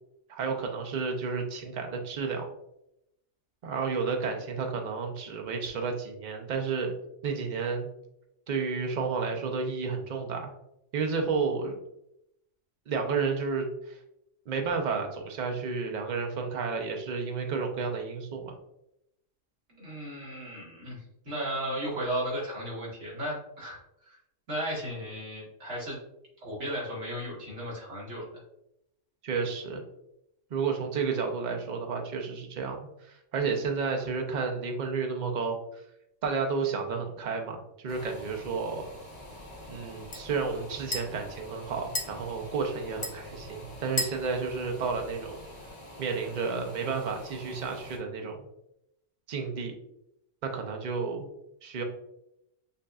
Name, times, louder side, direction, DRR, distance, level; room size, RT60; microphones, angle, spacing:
voice 1, 0.3-2.5 3.6-6.9 7.2-7.9 8.5-10.5 10.9-11.8 12.9-14.0 14.5-18.5 29.2-29.8 30.5-35.6 36.2-38.8 39.7-45.4 46.0-48.4 49.3-49.7 50.4-51.3 51.6-51.8, right 5 dB, 45° right, 3 dB, 0.6 m, -31 dB
voice 2, 19.7-24.2 24.5-26.0 26.4-28.4, equal, 65° right, -7 dB, 2.0 m, -35 dB
sound 1, 37.9-45.7, left 1 dB, 40° left, 0.7 m, -40 dB
sound 2, 37.9-48.0, left 1 dB, 25° left, 1.4 m, -47 dB
6.5 x 2.5 x 2.3 m, 0.82 s
omnidirectional pair, 1.3 m